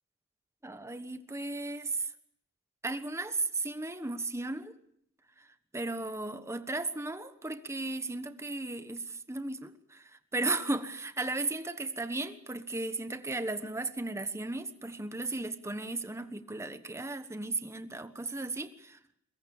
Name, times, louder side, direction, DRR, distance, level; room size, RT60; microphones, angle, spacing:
voice 1, 0.6-2.1 2.8-4.7 5.7-19.0, right 2 dB, 15° right, 1.2 m, -35 dB
23.0 x 22.0 x 7.1 m
head